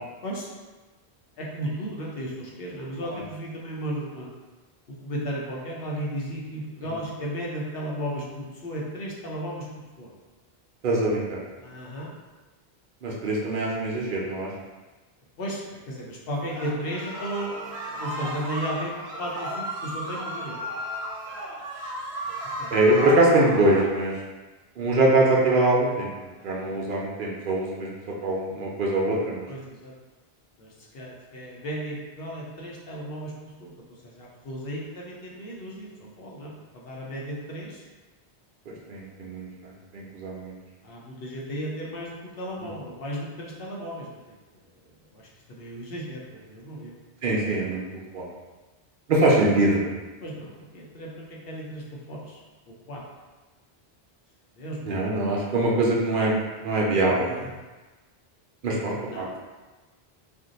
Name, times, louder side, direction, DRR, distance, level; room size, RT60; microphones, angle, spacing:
voice 1, 0.2-0.5 1.4-4.3 4.9-10.1 11.6-12.1 15.4-20.7 22.2-22.7 26.4-26.8 29.5-29.9 30.6-37.8 40.8-44.4 45.1-47.0 50.2-52.4 52.7-53.0 54.6-54.9 57.1-57.5 59.1-59.4, equal, 65° left, -4 dB, 0.8 m, -35 dB
voice 2, 10.8-11.4 13.0-14.5 22.7-24.1 24.8-26.1 26.4-28.0 28.2-29.5 38.9-39.5 39.9-40.5 47.2-47.8 48.1-48.3 49.1-49.9 54.9-56.3 56.6-57.4 58.6-59.4, right 2 dB, 60° right, -3 dB, 0.7 m, -23 dB
sound 1, 16.5-23.9, equal, 80° right, 1.0 m, -34 dB
2.6 x 2.1 x 3.8 m, 1.2 s
omnidirectional pair, 1.1 m